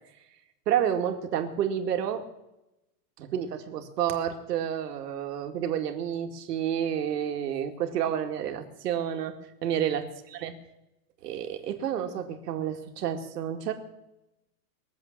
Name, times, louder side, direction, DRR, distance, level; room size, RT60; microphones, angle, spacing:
voice 1, 0.7-2.2 3.2-9.3 9.6-10.1 10.4-10.5 11.2-13.7, right 9 dB, 75° right, 6 dB, 2.4 m, -29 dB
22.0 x 7.8 x 7.5 m, 0.93 s
supercardioid pair, 160°, 48 cm